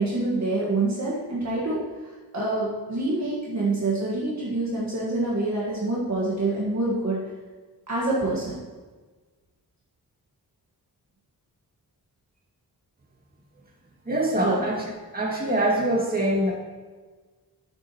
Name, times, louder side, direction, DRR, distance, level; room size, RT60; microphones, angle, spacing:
voice 1, 0.0-1.8 2.3-7.2 7.9-8.6 14.4-14.6, right 2 dB, 50° right, -6 dB, 1.7 m, -26 dB
voice 2, 14.1-14.8 15.1-16.5, right 1 dB, 25° right, -4 dB, 2.3 m, -24 dB
8.8 x 8.1 x 3.1 m, 1.3 s
wide cardioid pair, 105°, 37 cm